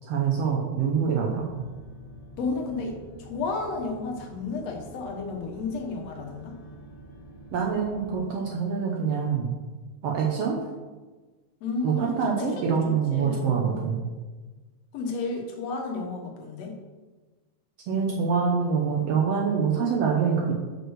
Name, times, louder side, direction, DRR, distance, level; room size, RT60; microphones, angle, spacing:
voice 1, 0.1-1.6 7.5-9.5 10.0-10.6 11.8-14.1 17.9-20.5, right 6 dB, 70° right, -1 dB, 1.7 m, -25 dB
sound 1, 1.3-8.2, right 1 dB, 25° left, 1.9 m, -47 dB
voice 2, 2.4-6.6 11.6-13.8 14.9-16.7, left 3 dB, 65° left, 2 dB, 2.2 m, -32 dB
6.3 x 5.3 x 6.2 m, 1.3 s
omnidirectional pair, 3.3 m